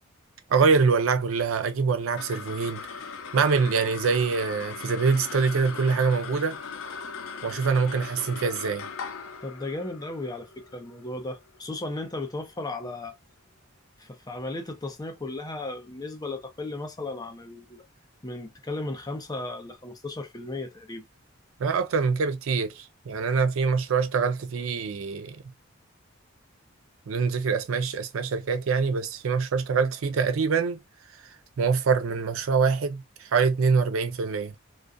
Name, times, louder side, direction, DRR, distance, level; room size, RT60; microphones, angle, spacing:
voice 1, 0.5-2.9 3.3-6.6 7.4-8.9 21.6-25.4 27.1-30.8 31.6-34.5, right 5 dB, 75° right, 0.4 m, -24 dB
sound 1, 1.9-12.5, left 5 dB, 85° left, 0.4 m, -40 dB
voice 2, 9.4-13.2 14.0-17.9 18.2-21.0, left 2 dB, 20° left, 0.6 m, -35 dB
2.4 x 2.2 x 2.4 m
head